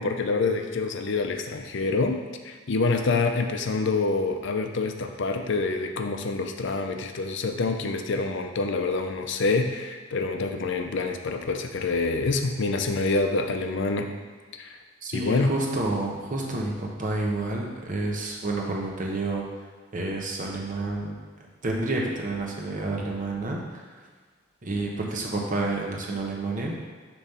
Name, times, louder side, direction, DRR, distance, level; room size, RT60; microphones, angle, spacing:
voice 1, 0.0-14.1 14.6-14.8 15.1-15.5, left 3 dB, 65° left, 5 dB, 0.6 m, -26 dB
voice 2, 15.0-19.4 19.9-21.2 21.6-24.0 24.6-26.7, right 2 dB, 45° right, -1 dB, 1.0 m, -29 dB
7.1 x 3.1 x 5.5 m, 1.5 s
head